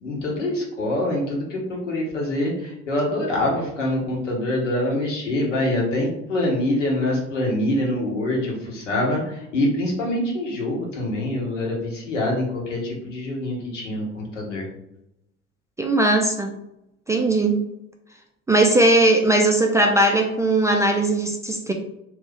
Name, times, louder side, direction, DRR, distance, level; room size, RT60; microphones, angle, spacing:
voice 1, 0.0-14.7, left 1 dB, 80° left, -1 dB, 1.1 m, -25 dB
voice 2, 15.8-16.5 17.1-17.6 18.5-21.7, right 2 dB, 10° right, 2 dB, 0.3 m, -19 dB
3.0 x 2.4 x 3.3 m, 0.82 s
figure-of-eight pair, 60°, 36 cm